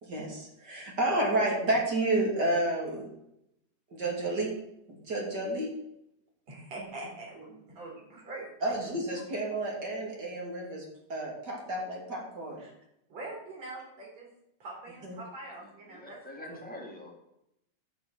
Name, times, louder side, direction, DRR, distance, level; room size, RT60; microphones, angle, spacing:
voice 1, 0.0-3.1 3.9-4.5 5.1-5.7 8.6-10.8 11.1-12.6 15.0-15.1, right 2 dB, 35° right, -1 dB, 3.4 m, -30 dB
voice 2, 6.5-8.8 12.6-12.7 13.1-14.3 14.6-16.2, right 2 dB, 60° right, -2 dB, 5.5 m, -43 dB
voice 3, 15.6-17.1, left 1 dB, 5° left, -1 dB, 2.5 m, -45 dB
11.0 x 6.5 x 9.1 m, 0.82 s
omnidirectional pair, 3.4 m